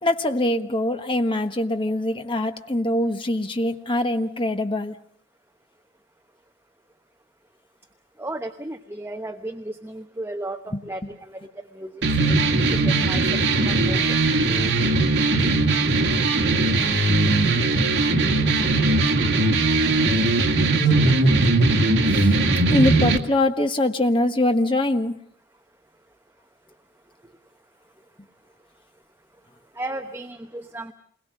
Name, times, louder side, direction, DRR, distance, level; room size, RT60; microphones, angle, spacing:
voice 1, 0.0-5.0 10.7-10.8 22.1-22.4 22.7-25.2, left 1 dB, 25° left, 7 dB, 1.3 m, -23 dB
voice 2, 8.2-11.4 11.7-11.9 12.2-12.4 12.8-14.2 29.8-30.9, right 1 dB, 15° right, 6 dB, 0.9 m, -34 dB
sound 1, 12.0-23.2, right 2 dB, 70° right, 2.1 m, -19 dB
28.5 x 21.5 x 6.4 m, 0.63 s
head